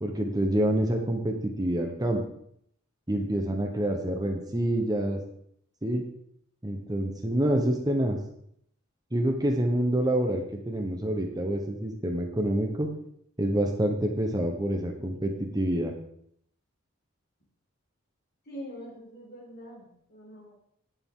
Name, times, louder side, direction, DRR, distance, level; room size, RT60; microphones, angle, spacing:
voice 1, 0.0-2.2 3.1-5.2 5.8-6.0 6.6-8.2 9.1-12.9 13.4-15.9, right 1 dB, 20° right, 3 dB, 1.2 m, -27 dB
voice 2, 18.4-20.5, equal, 50° left, -3 dB, 4.7 m, -44 dB
17.5 x 6.9 x 3.9 m, 0.69 s
head